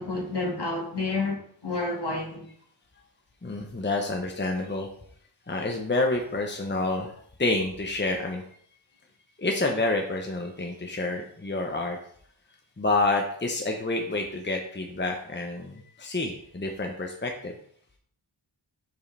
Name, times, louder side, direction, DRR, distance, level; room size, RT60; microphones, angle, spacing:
voice 1, 0.0-2.5, left 3 dB, 55° left, 1.9 m, -30 dB
voice 2, 3.4-4.9 5.5-7.1 7.4-8.4 9.4-12.0 12.8-17.5, left 2 dB, 20° left, 0.9 m, -28 dB
7.0 x 5.5 x 3.4 m
wide cardioid pair, 45°, 49 cm